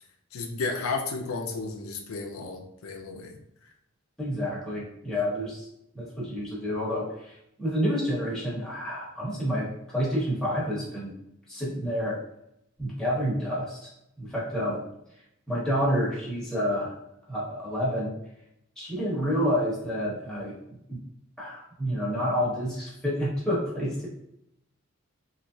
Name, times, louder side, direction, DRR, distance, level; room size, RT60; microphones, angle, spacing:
voice 1, 0.3-3.4 5.1-5.2 14.6-14.8, left 3 dB, 85° left, 3 dB, 0.5 m, -33 dB
voice 2, 4.2-5.7 5.9-11.1 11.5-12.2 12.8-13.9 14.2-14.8 15.5-16.9 17.3-18.1 18.8-20.5 20.9-21.0 21.4-24.1, equal, 5° left, -7 dB, 1.0 m, -29 dB
3.1 x 2.6 x 2.6 m, 0.78 s
head